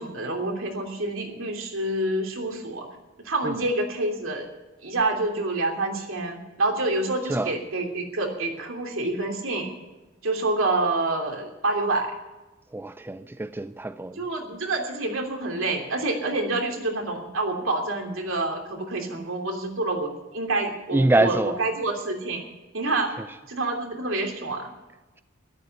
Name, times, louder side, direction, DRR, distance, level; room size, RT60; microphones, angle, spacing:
voice 1, 0.0-2.8 3.2-4.5 4.8-9.7 10.2-12.2 14.2-22.4 22.7-23.1 23.5-24.7, right 2 dB, 70° right, 3.1 m, -27 dB
voice 2, 12.7-14.1 20.9-21.5, right 2 dB, 10° right, 0.4 m, -24 dB
13.5 x 12.0 x 6.7 m
head